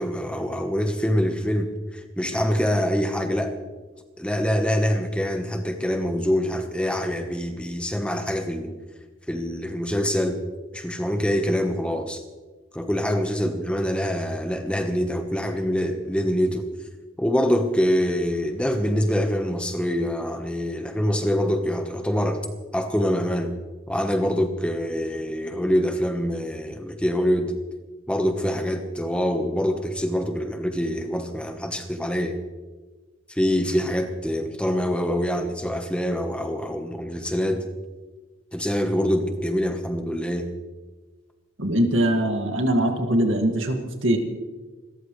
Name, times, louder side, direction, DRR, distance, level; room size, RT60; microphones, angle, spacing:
voice 1, 0.0-3.5 4.2-8.7 9.3-10.4 10.7-12.2 12.7-16.7 17.2-22.4 22.7-23.5 23.9-27.5 28.1-32.4 33.3-37.6 38.5-40.5, equal, 5° left, 5 dB, 1.2 m, -25 dB
voice 2, 41.6-44.2, right 1 dB, 75° right, 4 dB, 2.1 m, -22 dB
28.0 x 14.0 x 3.3 m, 1.3 s
head